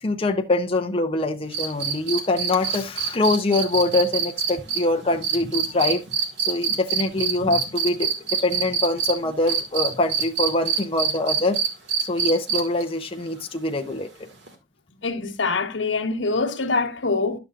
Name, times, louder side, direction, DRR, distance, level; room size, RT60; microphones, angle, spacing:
voice 1, 0.0-6.0 6.4-11.6 12.1-14.1, left 2 dB, 30° left, 0.6 m, -24 dB
sound 1, 1.5-9.1 9.5-12.8 14.5-14.6, right 7 dB, 65° right, 2.1 m, -25 dB
voice 2, 15.0-17.4, left 3 dB, 80° left, 1.1 m, -24 dB
11.0 x 6.9 x 2.5 m
head